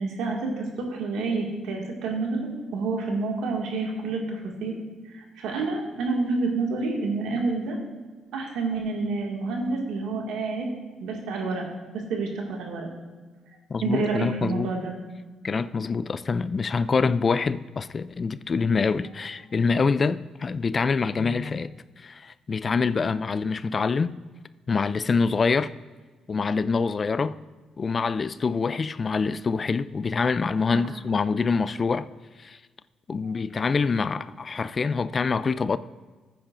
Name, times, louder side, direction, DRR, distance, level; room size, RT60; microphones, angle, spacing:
voice 1, 0.0-4.7 5.1-7.8 8.3-10.7 11.0-11.6 12.1-12.9 13.8-14.9 33.2-33.3, right 3 dB, 90° right, 1.9 m, -28 dB
voice 2, 13.7-14.7 15.4-21.7 22.0-24.1 24.7-25.7 26.3-27.4 27.8-32.1 32.4-32.6 33.1-35.8, left 4 dB, 40° left, 0.3 m, -25 dB
14.5 x 9.1 x 2.5 m
cardioid pair, 90°, 0 cm